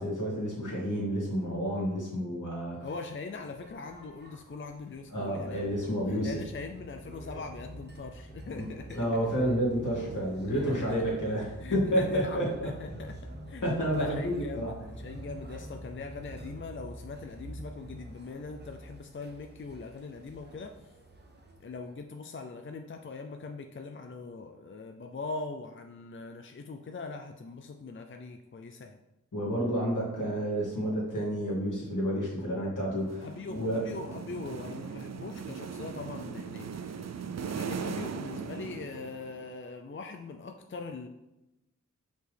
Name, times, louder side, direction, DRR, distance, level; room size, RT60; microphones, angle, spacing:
voice 1, 0.0-2.8 5.1-6.4 8.5-8.7 8.9-12.7 13.6-14.7 29.3-33.8, equal, 75° left, -4 dB, 2.3 m, -30 dB
voice 2, 2.8-9.2 10.5-10.6 11.6-13.2 13.5-20.7 21.6-29.0 33.2-41.1, left 4 dB, 40° left, 5 dB, 0.5 m, -41 dB
sound 1, 2.8-22.0, right 1 dB, 35° right, 0.9 m, -46 dB
sound 2, 33.0-39.5, right 6 dB, 55° right, 0.4 m, -39 dB
6.0 x 5.1 x 3.4 m, 0.95 s
wide cardioid pair, 80°, 31 cm